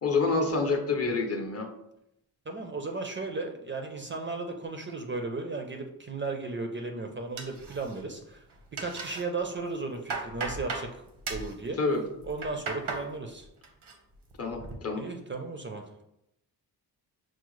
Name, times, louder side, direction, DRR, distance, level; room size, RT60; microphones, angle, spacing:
voice 1, 0.0-1.7 11.8-12.0 14.4-15.0, left 3 dB, 40° left, 4 dB, 0.6 m, -27 dB
voice 2, 2.5-8.4 8.7-10.9 11.3-11.8 12.2-13.5 14.9-16.0, right 3 dB, 30° right, 4 dB, 0.4 m, -35 dB
sound 1, 7.4-8.2 8.5-9.2 9.7-10.9 11.2-11.5 12.2-13.1 13.4-13.9 14.3-14.7, right 4 dB, 85° right, 0.8 m, -36 dB
6.1 x 2.0 x 3.0 m, 0.82 s
wide cardioid pair, 115°, 40 cm